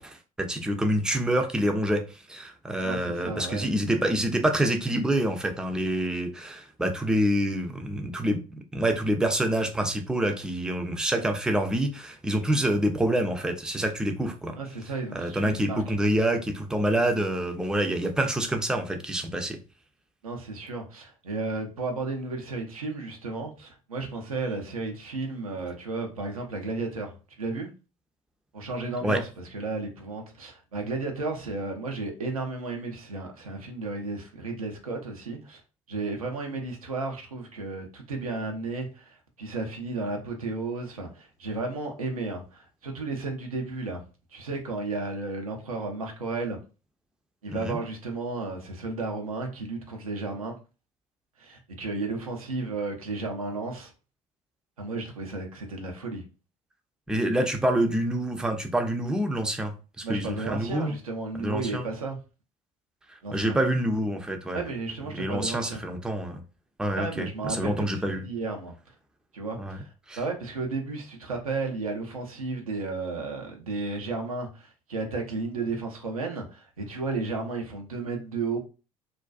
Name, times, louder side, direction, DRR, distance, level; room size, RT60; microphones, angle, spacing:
voice 1, 0.0-8.4 8.7-14.6 15.1-19.6 29.0-29.2 47.5-47.8 57.1-61.0 61.4-61.9 63.3-64.6 65.1-66.4 66.8-68.2 69.6-69.8 70.1-70.2, right 1 dB, 5° right, 0.4 m, -27 dB
voice 2, 2.8-3.7 14.5-15.9 20.2-27.7 28.5-35.6 35.9-44.0 44.3-46.6 47.4-50.6 51.4-53.9 54.8-56.2 60.0-62.2 63.2-63.6 64.5-65.8 66.9-68.7 69.3-69.9 70.2-78.6, right 3 dB, 90° right, 0.5 m, -33 dB
2.4 x 2.2 x 2.3 m
figure-of-eight pair, 60°, 18 cm